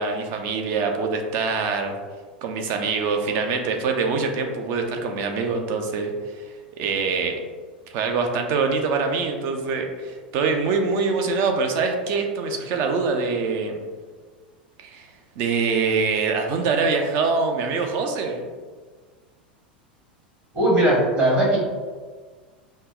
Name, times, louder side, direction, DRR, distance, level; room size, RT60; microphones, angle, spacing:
voice 1, 0.0-1.9 2.4-6.1 6.8-7.4 7.9-13.8 14.8-15.1 15.4-18.5, right 4 dB, 45° right, 4 dB, 0.5 m, -24 dB
voice 2, 20.5-21.6, right 1 dB, 30° right, -3 dB, 1.2 m, -18 dB
5.3 x 2.0 x 2.4 m, 1.5 s
figure-of-eight pair, 85°, 5 cm